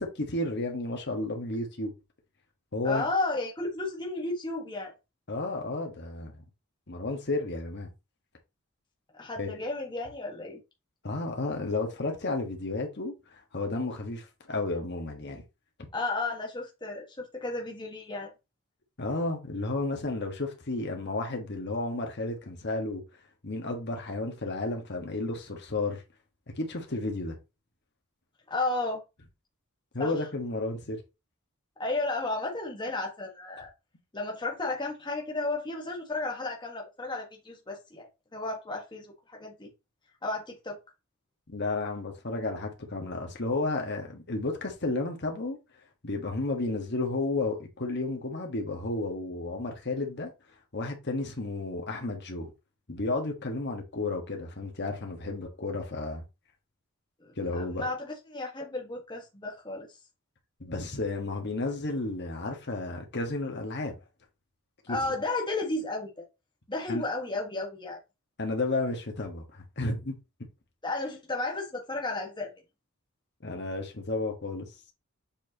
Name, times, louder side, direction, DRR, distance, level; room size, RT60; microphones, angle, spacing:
voice 1, 0.0-1.9 2.7-3.1 5.3-6.4 6.9-7.9 9.4-9.6 11.0-15.4 19.0-23.0 23.4-26.0 26.6-27.3 29.9-31.0 41.5-45.6 46.0-50.3 50.7-52.5 52.9-56.2 57.4-57.8 60.6-63.9 64.9-65.0 66.9-67.0 68.4-70.2 73.4-74.7, left 2 dB, 50° left, 1.5 m, -32 dB
voice 2, 2.8-4.9 9.1-10.6 15.9-18.3 28.5-29.0 30.0-30.1 31.8-33.7 34.1-38.1 38.3-39.7 40.2-40.8 57.2-59.9 64.9-66.2 66.7-68.0 70.8-72.5, left 2 dB, 20° left, 1.4 m, -33 dB
7.3 x 4.5 x 2.9 m
head